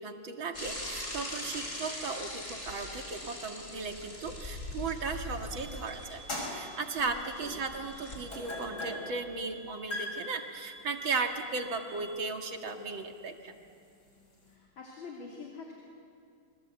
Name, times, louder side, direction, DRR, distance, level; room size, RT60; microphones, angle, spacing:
voice 1, 0.0-6.2 6.5-13.5, right 4 dB, 70° right, 4 dB, 2.7 m, -36 dB
Bicycle / Mechanisms, 0.5-8.2, left 1 dB, 35° left, 5.5 m, -41 dB
sound 1, 3.7-5.6 6.0-14.6, left 2 dB, 50° left, 6.5 m, -43 dB
sound 2, 5.5-12.3, right 4 dB, 45° right, 2.1 m, -52 dB
voice 2, 7.0-7.7 14.5-15.7, left 4 dB, 75° left, -2 dB, 3.9 m, -46 dB
29.5 x 24.5 x 8.2 m, 2.4 s
omnidirectional pair, 2.2 m